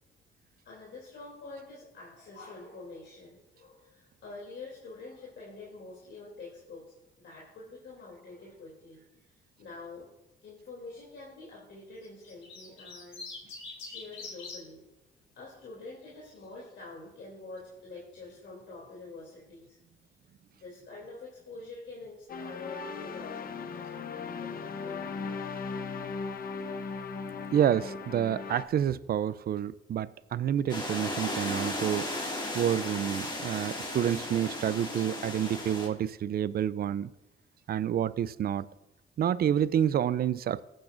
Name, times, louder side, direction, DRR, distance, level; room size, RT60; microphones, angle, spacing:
voice 1, 0.6-9.0 9.3-10.1 10.4-13.3 13.8-14.8 15.3-19.8 20.5-25.2, left 3 dB, 65° left, 2.9 m, -46 dB
sound 1, 12.0-14.6 15.8-16.3, left 4 dB, 80° left, 3.3 m, -43 dB
sound 2, 22.3-28.6, left 5 dB, 45° left, 0.9 m, -38 dB
voice 2, 27.5-37.1 37.7-38.7 39.2-40.6, right 10 dB, 50° right, 0.4 m, -29 dB
sound 3, 30.7-35.9, left 1 dB, 20° left, 2.1 m, -35 dB
18.5 x 8.7 x 2.5 m
cardioid pair, 90°, 20 cm